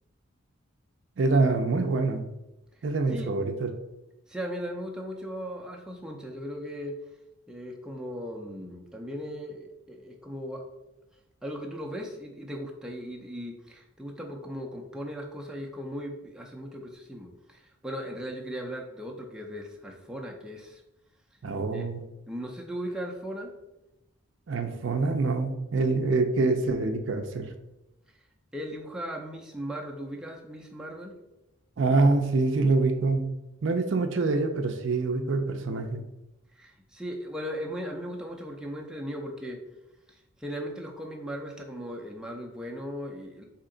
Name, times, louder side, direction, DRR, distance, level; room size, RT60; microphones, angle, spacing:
voice 1, 1.2-2.2 2.8-3.7 21.4-22.0 24.5-27.5 31.8-33.2 33.6-36.0, right 3 dB, 60° right, 6 dB, 0.4 m, -25 dB
voice 2, 4.3-7.0 7.5-10.6 11.4-20.8 21.7-21.9 22.3-23.5 28.5-31.1 36.5-39.6 40.1-43.4, equal, 5° right, -1 dB, 0.4 m, -37 dB
4.3 x 2.8 x 3.8 m, 0.94 s
head